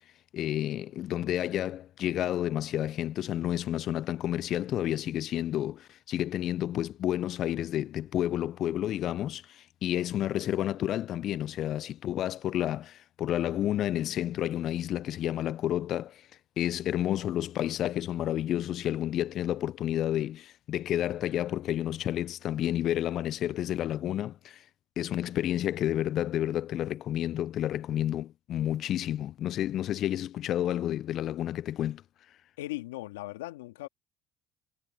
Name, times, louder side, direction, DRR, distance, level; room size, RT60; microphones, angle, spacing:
voice 1, 0.3-16.2 16.6-24.6 25.0-32.0, left 12 dB, 60° left, 0.4 m, -30 dB
voice 2, 32.6-33.9, left 18 dB, 85° left, 2.5 m, -38 dB
hypercardioid pair, 60°, 0 cm